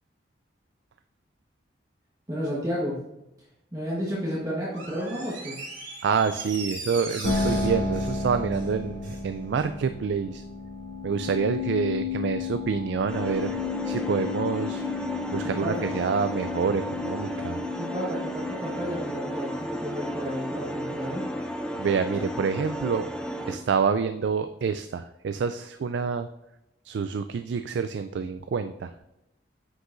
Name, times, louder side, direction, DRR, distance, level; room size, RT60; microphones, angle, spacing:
voice 1, 2.3-3.0 3.7-5.5 15.4-15.8 17.7-21.2, equal, 20° right, -6 dB, 1.3 m, -32 dB
Door, 4.7-9.3 9.6-9.7, right 3 dB, 90° right, 2.8 m, -40 dB
voice 2, 6.0-10.4 11.0-13.6 13.9-17.6 21.8-23.1 23.5-26.3 26.8-28.9, right 6 dB, 70° right, 10 dB, 0.3 m, -27 dB
sound 1, 7.2-19.5, left 4 dB, 75° left, 2.0 m, -33 dB
sound 2, 13.1-23.6, equal, 5° left, 0.5 m, -33 dB
9.5 x 6.5 x 2.6 m, 0.91 s
head